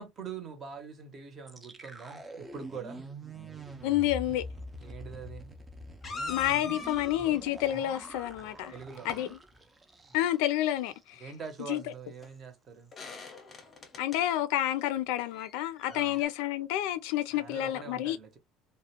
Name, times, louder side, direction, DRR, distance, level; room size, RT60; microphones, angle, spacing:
voice 1, 0.0-3.0 4.8-5.5 8.7-9.3 11.2-12.9 15.9-16.2 17.3-18.4, right 6 dB, 30° right, 0.7 m, -44 dB
sound 1, 1.5-10.5 10.8-11.0 11.3-11.7, right 1 dB, 15° right, 0.4 m, -45 dB
voice 2, 3.8-4.4 6.3-8.7 9.0-9.4 10.1-11.2 11.7-11.8 14.0-18.2, left 13 dB, 85° left, 0.3 m, -29 dB
sound 2, 4.8-4.9 6.0-7.4 8.7-9.2 11.8-11.9 12.2-12.3 12.9-14.2 15.3-16.2, left 4 dB, 25° left, 0.6 m, -42 dB
2.4 x 2.1 x 2.8 m
cardioid pair, 150°, 0 cm